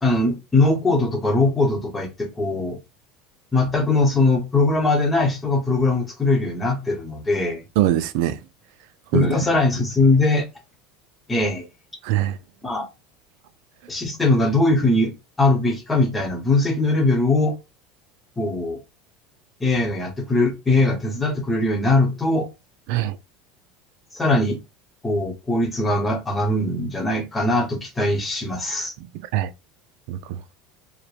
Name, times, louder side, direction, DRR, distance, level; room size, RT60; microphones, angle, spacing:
voice 1, 0.0-2.8 3.5-7.6 9.1-10.4 11.3-11.7 12.6-12.9 13.9-17.5 18.4-18.8 19.6-22.5 24.1-24.6 25.0-28.9, left 2 dB, 15° left, 0.8 m, -21 dB
voice 2, 7.8-8.4 9.1-9.3 12.0-12.4 22.9-23.2 29.0-29.1 29.3-29.5 30.1-30.4, right 13 dB, 70° right, 0.3 m, -22 dB
3.0 x 2.1 x 2.3 m
supercardioid pair, 125°, 0 cm